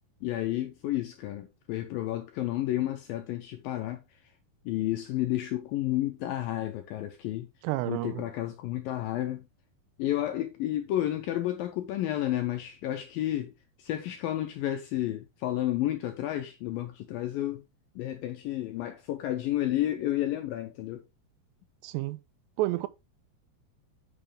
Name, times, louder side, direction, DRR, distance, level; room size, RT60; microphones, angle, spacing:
voice 1, 0.2-4.0 4.7-7.5 7.9-9.4 10.0-13.5 13.8-17.6 18.0-21.0, left 13 dB, 80° left, 2.1 m, -31 dB
voice 2, 7.6-8.3 21.8-22.2 22.6-22.9, right 17 dB, 85° right, 2.8 m, -30 dB
9.1 x 5.8 x 3.3 m
omnidirectional pair, 5.0 m